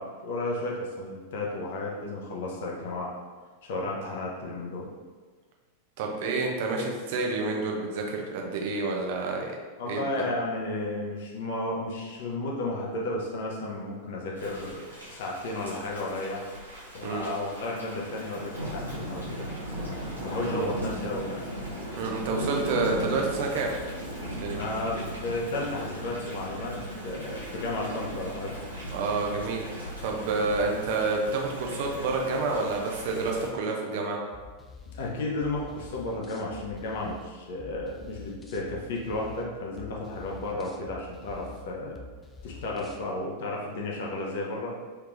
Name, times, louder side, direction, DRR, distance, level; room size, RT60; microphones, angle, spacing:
voice 1, 0.0-3.1 3.6-4.9 9.8-14.8 15.1-16.5 16.9-19.5 20.2-21.4 24.5-26.8 27.0-28.6 34.9-42.0 42.4-44.8, left 2 dB, 55° left, -3 dB, 0.6 m, -33 dB
voice 2, 6.0-9.5 9.9-10.3 17.0-17.2 20.4-20.7 21.9-23.7 24.4-24.6 28.9-29.7 30.0-34.2, right 3 dB, 50° right, 1 dB, 0.6 m, -29 dB
Thunder / Rain, 14.4-33.5, equal, 90° right, 1.0 m, -37 dB
sound 1, 34.3-43.0, left 3 dB, 15° left, 0.3 m, -47 dB
3.3 x 3.3 x 2.5 m, 1.4 s
figure-of-eight pair, 90°, 0 cm